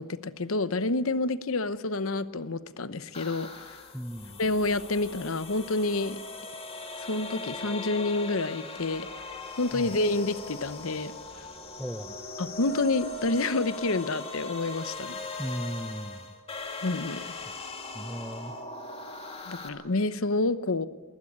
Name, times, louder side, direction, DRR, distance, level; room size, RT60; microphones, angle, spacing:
voice 1, 0.0-3.8 4.4-6.2 7.1-9.2 9.6-11.5 12.4-15.2 16.8-17.3 19.5-20.9, left 2 dB, 80° left, 14 dB, 1.0 m, -29 dB
sound 1, 3.1-19.7, left 3 dB, 30° left, 2.5 m, -39 dB
voice 2, 3.9-4.4 9.7-9.9 11.8-12.1 15.4-16.3 17.9-18.6, equal, ahead, 14 dB, 0.6 m, -36 dB
21.5 x 19.5 x 8.7 m, 1.4 s
head